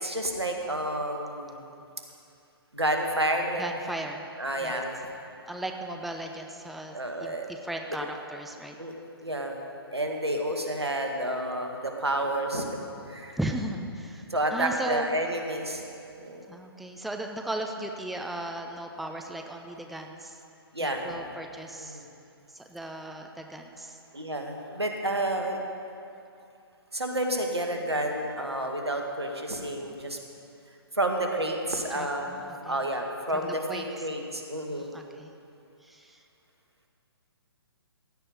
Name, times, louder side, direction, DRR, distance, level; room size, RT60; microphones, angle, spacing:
voice 1, 0.0-1.6 2.7-4.0 4.4-4.9 6.9-7.5 8.8-8.9 9.2-9.6 9.9-12.7 13.1-13.4 14.3-15.9 16.2-16.5 20.7-21.2 21.8-22.1 24.1-25.6 26.9-30.2 30.9-32.3 32.6-34.9, right 1 dB, 90° right, 2 dB, 1.9 m, -30 dB
voice 2, 3.6-4.2 4.6-4.8 5.5-8.8 13.4-15.1 16.5-20.4 20.8-22.1 22.5-24.0 31.9-32.8 33.3-33.9 34.7-35.3 35.8-36.2, right 1 dB, ahead, 3 dB, 0.6 m, -37 dB
16.0 x 5.5 x 9.8 m, 2.6 s
figure-of-eight pair, 130°, 13 cm